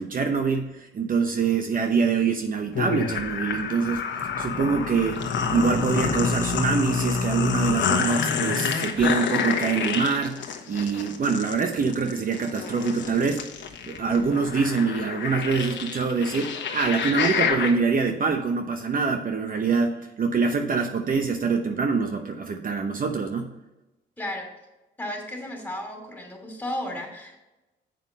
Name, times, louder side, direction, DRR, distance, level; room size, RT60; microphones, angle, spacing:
voice 1, 0.0-4.1 4.4-13.5 13.9-23.5, right 5 dB, 45° right, 5 dB, 0.8 m, -25 dB
sound 1, 2.8-17.7, left 6 dB, 70° left, 1.2 m, -28 dB
voice 2, 24.2-24.5 25.0-27.4, left 1 dB, 10° left, 1 dB, 2.8 m, -34 dB
7.6 x 5.8 x 5.3 m, 1.0 s
cardioid pair, 90°, 20 cm